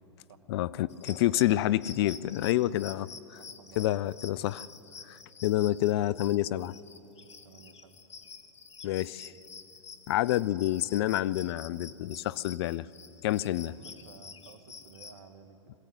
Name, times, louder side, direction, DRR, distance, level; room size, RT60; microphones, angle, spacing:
voice 1, 0.5-3.4 3.8-4.6 5.1-6.7 8.8-9.3 10.1-12.9 13.2-13.7, left 14 dB, 60° left, 20 dB, 0.5 m, -28 dB
sound 1, 0.9-15.2, left 5 dB, 80° left, 1.3 m, -48 dB
voice 2, 1.0-1.4 3.4-4.2 7.4-8.0 13.7-15.7, right 6 dB, 65° right, 7 dB, 1.9 m, -54 dB
22.5 x 16.5 x 8.2 m, 3.0 s
hypercardioid pair, 100°, 15 cm